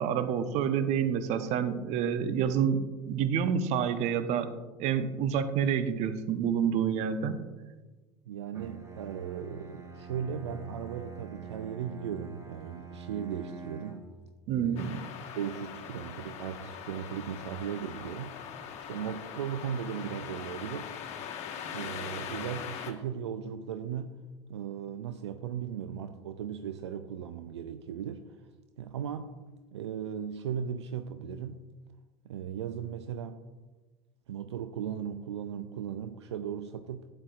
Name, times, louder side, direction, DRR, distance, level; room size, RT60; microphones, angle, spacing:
voice 1, 0.0-4.5 4.8-7.4 14.5-15.0, right 8 dB, 55° right, 10 dB, 0.8 m, -28 dB
voice 2, 8.3-14.0 14.5-15.0 15.4-18.4 18.9-20.9 21.7-24.1 24.5-28.2 28.8-29.3 29.7-31.6 32.2-33.5 34.3-37.1, right 8 dB, 80° right, 10 dB, 0.4 m, -37 dB
Bowed string instrument, 8.5-14.2, right 4 dB, 20° right, 1.1 m, -45 dB
sound 1, 14.8-22.9, left 8 dB, 50° left, 1.3 m, -41 dB
12.0 x 8.9 x 2.4 m, 1.2 s
hypercardioid pair, 75°, 14 cm